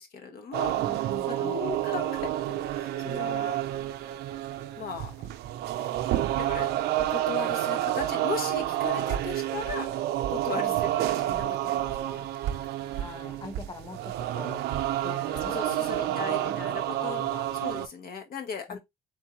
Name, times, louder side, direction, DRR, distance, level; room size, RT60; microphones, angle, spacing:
voice 1, 0.0-0.8 1.3-3.5 4.8-5.1 6.4-6.7 7.0-10.9 11.2-12.3 15.5-17.2 17.6-18.8, left 5 dB, 60° left, 1.1 m, -37 dB
sound 1, 0.5-17.9, right 13 dB, 75° right, 0.6 m, -29 dB
voice 2, 0.7-1.9 10.5-11.0 13.0-14.7 15.0-17.5 18.7-18.8, left 3 dB, 25° left, 1.2 m, -44 dB
4.5 x 3.7 x 3.1 m
cardioid pair, 110°, 17 cm